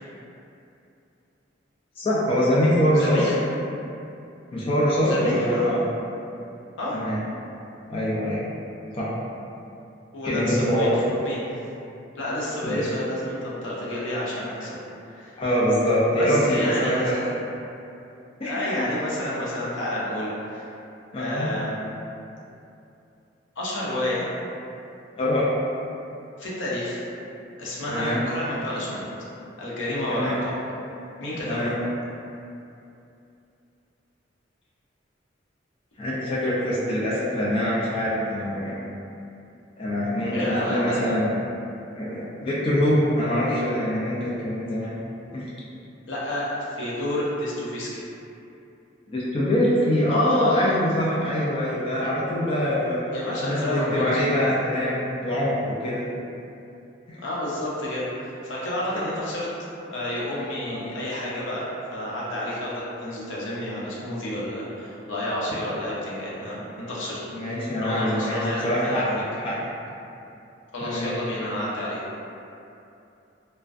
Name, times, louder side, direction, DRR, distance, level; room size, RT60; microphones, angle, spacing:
voice 1, 2.0-3.3 4.5-5.9 6.9-7.2 7.9-8.4 8.9-9.1 10.2-10.9 12.6-12.8 15.4-17.1 18.4-18.7 21.1-21.5 25.2-25.5 27.9-28.2 30.1-30.4 31.4-31.7 36.0-38.8 39.8-41.3 42.0-45.0 45.3-45.5 49.1-53.0 53.4-56.0 57.1-57.2 60.7-60.8 67.3-69.5 70.8-71.1, equal, 30° left, -8 dB, 0.4 m, -24 dB
voice 2, 2.9-3.3 5.0-5.6 6.8-7.0 10.1-11.4 12.2-14.8 15.0-15.4 16.2-17.3 18.4-20.7 21.1-21.8 23.6-24.2 26.4-27.1 27.6-29.1 29.6-30.5 31.2-31.7 40.3-41.0 46.1-47.9 53.1-54.4 57.2-59.5 59.9-61.7 61.9-67.5 67.8-69.1 70.7-72.0, left 1 dB, 80° left, -7 dB, 0.5 m, -30 dB
2.4 x 2.1 x 2.3 m, 2.7 s
head